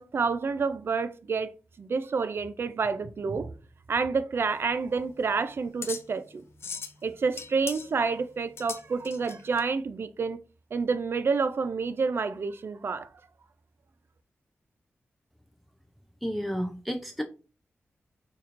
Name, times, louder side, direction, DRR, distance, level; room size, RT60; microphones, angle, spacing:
voice 1, 0.0-1.5 1.8-3.5 3.9-6.4 7.0-10.4 10.7-13.1, right 4 dB, 55° right, 0.4 m, -29 dB
sound 1, 4.4-9.6, left 5 dB, 65° left, 0.4 m, -41 dB
voice 2, 16.2-17.2, equal, ahead, 0.5 m, -31 dB
4.2 x 3.0 x 2.5 m
cardioid pair, 70°, 5 cm